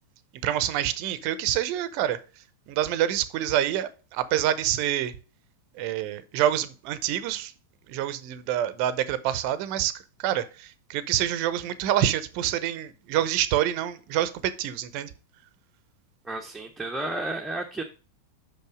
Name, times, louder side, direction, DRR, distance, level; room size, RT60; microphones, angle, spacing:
voice 1, 0.4-2.2 2.7-5.1 5.8-7.5 7.9-9.9 10.2-15.1, right 11 dB, 45° right, 0.8 m, -27 dB
voice 2, 16.2-17.8, right 2 dB, 5° right, 1.0 m, -32 dB
6.0 x 5.5 x 5.0 m
figure-of-eight pair, 90°, 0 cm